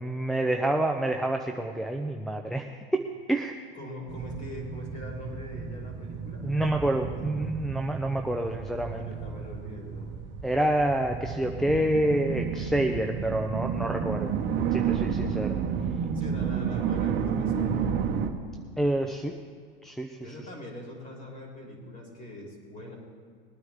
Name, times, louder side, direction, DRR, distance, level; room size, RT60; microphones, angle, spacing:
voice 1, 0.0-3.0 3.3-3.6 6.4-9.1 10.4-14.3 14.7-15.5 18.8-19.3 19.8-20.1, right 1 dB, ahead, 2 dB, 0.6 m, -27 dB
voice 2, 3.7-6.4 6.9-7.3 9.1-10.3 16.1-17.9 20.2-23.0, left 1 dB, 25° left, -2 dB, 3.9 m, -42 dB
sound 1, 4.1-18.3, right 7 dB, 40° right, 1.3 m, -31 dB
21.0 x 9.3 x 3.6 m, 2.1 s
hypercardioid pair, 110°, 29 cm